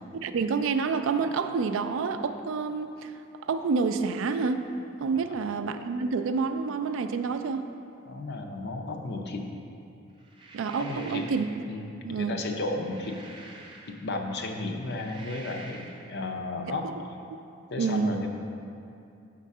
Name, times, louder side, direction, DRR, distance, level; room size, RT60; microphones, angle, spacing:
voice 1, 0.2-3.1 3.4-4.7 5.0-7.7 10.5-11.5 12.0-12.4 16.7-16.8 17.8-18.1, right 5 dB, 70° right, 9 dB, 0.4 m, -28 dB
voice 2, 8.1-9.4 10.8-11.2 11.7-11.9 12.2-13.1 14.0-16.9 17.7-18.3, left 2 dB, 55° left, 3 dB, 0.6 m, -33 dB
sound 1, 10.2-11.7 12.5-14.2 14.7-16.1, right 2 dB, 25° right, 0.6 m, -47 dB
7.4 x 3.7 x 5.4 m, 2.6 s
head